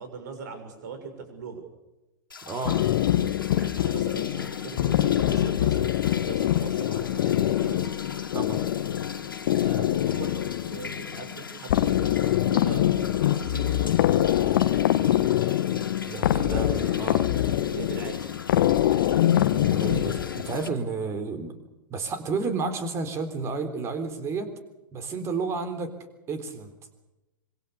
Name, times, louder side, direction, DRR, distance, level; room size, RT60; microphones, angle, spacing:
voice 1, 0.0-1.6 3.5-5.8 6.0-7.9 9.6-12.9 13.4-13.7 16.2-16.9 17.2-18.2, right 5 dB, 55° right, 6 dB, 6.7 m, -40 dB
sound 1, 2.3-20.7, left 4 dB, 80° left, 2.7 m, -41 dB
voice 2, 2.5-2.8 8.3-8.6 16.0-17.2 19.7-21.5 21.9-24.5 24.9-25.9 26.3-26.7, right 4 dB, 25° right, 9 dB, 3.6 m, -31 dB
sound 2, 2.6-20.8, left 12 dB, 55° left, 1.4 m, -24 dB
26.0 x 23.0 x 7.0 m, 1.0 s
figure-of-eight pair, 105°, 11 cm